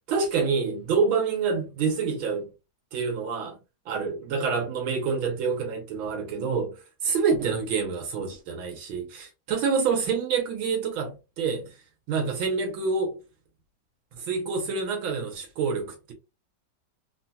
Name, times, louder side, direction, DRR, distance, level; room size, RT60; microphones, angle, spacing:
voice 1, 0.1-2.5 2.9-3.6 3.9-6.8 7.0-11.7 12.1-13.2 14.1-16.1, right 5 dB, 80° right, 1.8 m, -27 dB
3.8 x 2.7 x 2.3 m
omnidirectional pair, 2.2 m